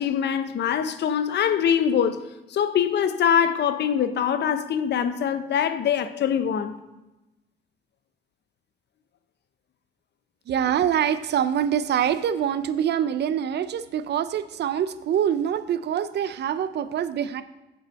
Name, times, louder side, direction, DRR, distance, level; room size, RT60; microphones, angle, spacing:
voice 1, 0.0-2.2 2.5-6.8, left 8 dB, 60° left, 0.7 m, -23 dB
voice 2, 10.5-17.4, right 9 dB, 60° right, 0.5 m, -25 dB
7.1 x 7.0 x 4.1 m
cardioid pair, 90°, 20 cm